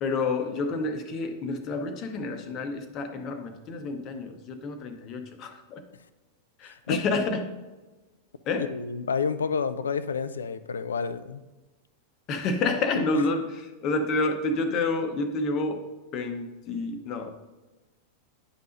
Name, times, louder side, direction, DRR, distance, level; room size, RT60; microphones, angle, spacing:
voice 1, 0.0-5.8 6.6-7.4 8.5-8.7 12.3-15.8 16.1-17.3, left 3 dB, 35° left, 7 dB, 0.9 m, -29 dB
voice 2, 6.6-7.0 8.6-11.5, left 5 dB, 70° left, 13 dB, 0.4 m, -30 dB
10.0 x 5.6 x 2.6 m, 1.1 s
figure-of-eight pair, 90°, 0 cm